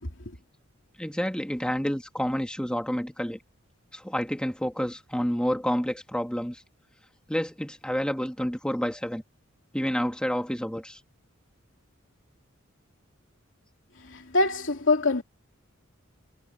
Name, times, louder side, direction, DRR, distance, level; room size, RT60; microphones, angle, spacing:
voice 1, 1.0-3.4 3.9-6.6 7.3-9.2 9.7-11.0, equal, 5° left, 1.8 m, -29 dB
voice 2, 14.0-15.2, left 2 dB, 65° left, 3.1 m, -24 dB
head